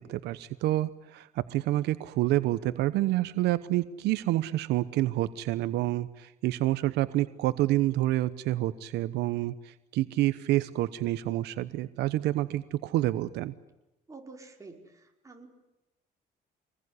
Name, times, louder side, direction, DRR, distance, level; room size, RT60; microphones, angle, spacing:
voice 1, 0.0-13.5, right 15 dB, 85° right, 13 dB, 1.0 m, -28 dB
voice 2, 14.1-15.5, right 3 dB, 20° right, 1 dB, 5.2 m, -48 dB
26.5 x 20.5 x 9.8 m, 0.95 s
cardioid pair, 110°, 17 cm